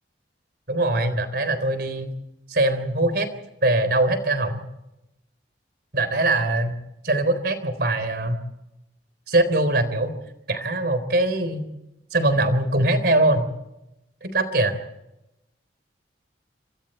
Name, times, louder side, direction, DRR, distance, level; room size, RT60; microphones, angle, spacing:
voice 1, 0.7-2.1 2.5-3.3 3.6-4.6 5.9-6.8 7.0-8.4 9.3-10.1 10.5-11.6 12.1-13.5 14.2-14.8, right 2 dB, 60° right, 11 dB, 3.8 m, -22 dB
27.0 x 26.0 x 4.4 m, 0.91 s
head